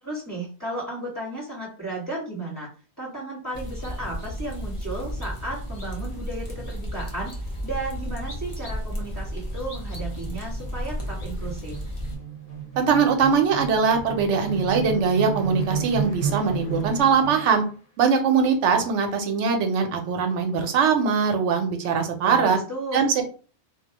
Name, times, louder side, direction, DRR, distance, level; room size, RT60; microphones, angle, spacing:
voice 1, 0.0-2.7 3.0-7.3 7.6-11.8 22.2-23.0, right 2 dB, 15° left, -5 dB, 1.2 m, -34 dB
sound 1, 3.5-12.2, equal, 35° left, 0.6 m, -33 dB
sound 2, 8.2-17.7, right 7 dB, 55° left, 1.1 m, -34 dB
voice 2, 12.8-17.6 18.0-22.6 22.9-23.1, right 5 dB, 85° right, 5 dB, 0.9 m, -21 dB
2.5 x 2.1 x 2.8 m, 0.38 s
omnidirectional pair, 1.2 m